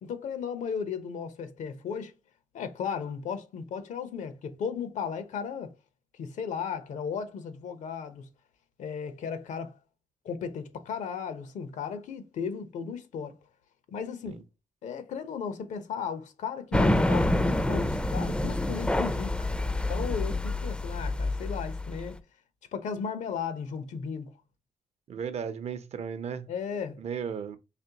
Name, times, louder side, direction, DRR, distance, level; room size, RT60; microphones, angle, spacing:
voice 1, 0.0-2.1 2.5-5.7 6.2-8.3 8.8-9.7 10.2-13.4 13.9-14.4 14.8-19.5 19.9-22.2 22.7-24.3 26.5-27.0, left 6 dB, 80° left, 0.8 m, -35 dB
sound 1, 16.7-22.1, left 1 dB, 10° left, 0.4 m, -27 dB
voice 2, 25.1-26.5 27.0-27.6, right 7 dB, 60° right, 0.6 m, -35 dB
4.2 x 3.0 x 2.8 m
cardioid pair, 105°, 12 cm